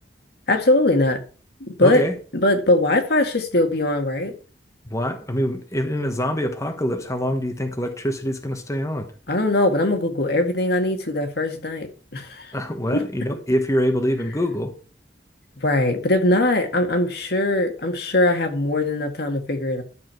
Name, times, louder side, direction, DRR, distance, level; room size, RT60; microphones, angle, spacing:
voice 1, 0.5-1.2 1.6-2.1 2.3-4.3 9.3-12.5 12.9-13.0 15.6-19.8, left 1 dB, 65° left, 1.8 m, -21 dB
voice 2, 1.8-2.1 4.9-9.1 12.5-14.7, equal, 20° left, 1.3 m, -24 dB
12.5 x 7.2 x 4.6 m
head